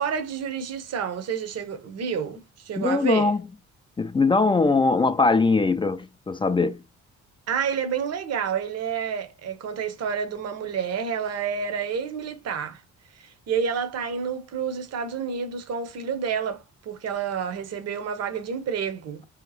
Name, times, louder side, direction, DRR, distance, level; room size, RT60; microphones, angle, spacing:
voice 1, 0.0-3.4 7.5-12.8 13.1-19.2, right 7 dB, 55° right, 0.8 m, -29 dB
voice 2, 2.8-3.5 4.0-6.8, left 3 dB, 15° left, 0.3 m, -21 dB
3.5 x 2.8 x 4.0 m
cardioid pair, 90°, 30 cm